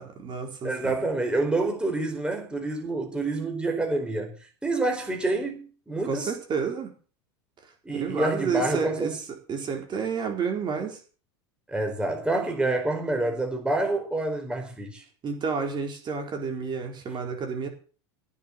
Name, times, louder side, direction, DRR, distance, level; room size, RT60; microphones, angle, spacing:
voice 1, 0.0-0.9 6.0-6.9 7.9-9.2 9.5-11.0 15.2-17.7, right 5 dB, 35° right, 4.5 m, -30 dB
voice 2, 0.6-4.3 4.6-6.3 7.8-9.2 11.7-15.0, right 2 dB, 5° right, 4.7 m, -27 dB
16.5 x 7.1 x 7.9 m
hypercardioid pair, 100°, 13 cm